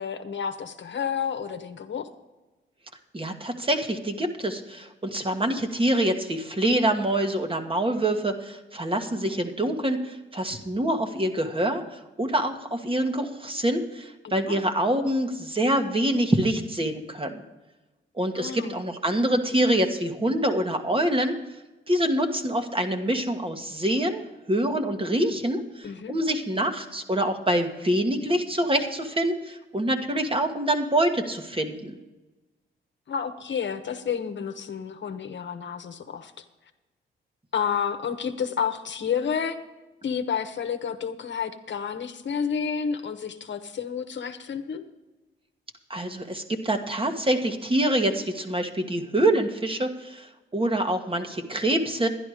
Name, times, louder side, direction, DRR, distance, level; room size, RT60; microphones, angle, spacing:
voice 1, 0.0-2.1 14.2-14.6 18.3-18.8 25.8-26.1 33.1-36.4 37.5-39.6 40.0-44.8, left 7 dB, 60° left, 8 dB, 1.1 m, -30 dB
voice 2, 3.1-17.4 18.2-21.3 21.9-31.9 45.9-52.1, right 1 dB, 25° right, 5 dB, 1.5 m, -25 dB
11.0 x 10.5 x 4.9 m, 1.1 s
cardioid pair, 65°, 21 cm